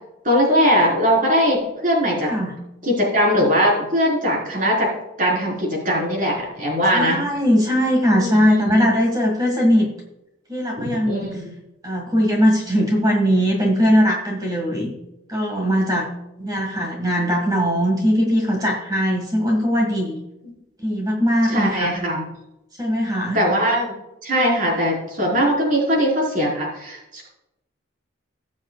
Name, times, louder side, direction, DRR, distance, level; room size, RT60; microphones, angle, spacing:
voice 1, 0.2-2.3 2.8-4.9 5.2-7.2 8.2-8.9 11.1-11.5 21.5-22.2 23.3-23.9 24.2-27.3, equal, 40° right, -3 dB, 4.3 m, -20 dB
voice 2, 2.2-2.6 6.9-9.9 10.5-11.4 11.8-14.9 15.3-16.1 16.4-20.2 20.8-21.9 22.8-23.4, equal, 20° right, 0 dB, 1.8 m, -20 dB
19.5 x 7.2 x 2.4 m, 0.89 s
head